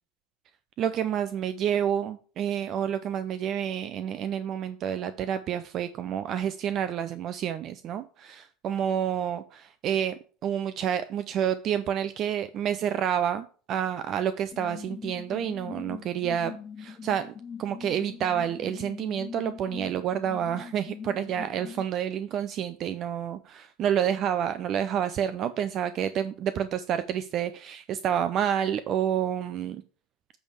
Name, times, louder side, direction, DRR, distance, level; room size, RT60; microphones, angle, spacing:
voice 1, 0.8-17.3 17.6-29.8, right 9 dB, 45° right, 12 dB, 0.5 m, -29 dB
sound 1, 14.5-21.9, left 6 dB, 30° left, 0.6 m, -42 dB
8.6 x 3.5 x 6.4 m, 0.41 s
hypercardioid pair, 90°, 0 cm